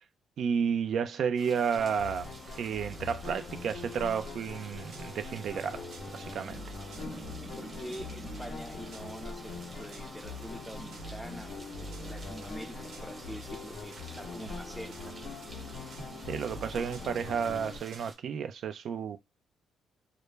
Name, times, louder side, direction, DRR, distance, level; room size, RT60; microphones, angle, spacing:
voice 1, 0.4-2.3 2.6-5.9 6.1-6.6 16.3-19.2, right 7 dB, 60° right, 0.3 m, -31 dB
sound 1, 1.4-18.1, right 2 dB, 25° right, 0.8 m, -50 dB
sound 2, 1.8-17.8, left 3 dB, 60° left, 0.6 m, -43 dB
sound 3, 4.5-18.0, right 4 dB, 85° right, 0.7 m, -52 dB
voice 2, 7.4-15.1, equal, ahead, 0.5 m, -45 dB
2.2 x 2.0 x 3.2 m
cardioid pair, 125°, 0 cm